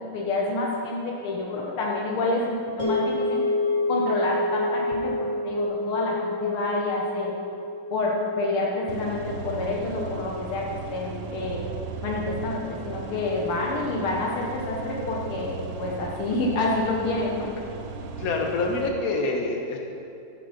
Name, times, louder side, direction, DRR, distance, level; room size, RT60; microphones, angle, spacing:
voice 1, 0.1-3.4 3.9-7.3 7.9-11.6 12.0-17.5, left 2 dB, 80° left, -2 dB, 2.1 m, -28 dB
sound 1, 2.8-11.1, left 2 dB, 35° right, 3.1 m, -29 dB
sound 2, 8.9-18.9, right 5 dB, 75° right, 1.6 m, -37 dB
voice 2, 18.2-19.8, left 3 dB, 45° left, 1 dB, 1.5 m, -26 dB
13.5 x 6.7 x 5.4 m, 2.6 s
omnidirectional pair, 2.4 m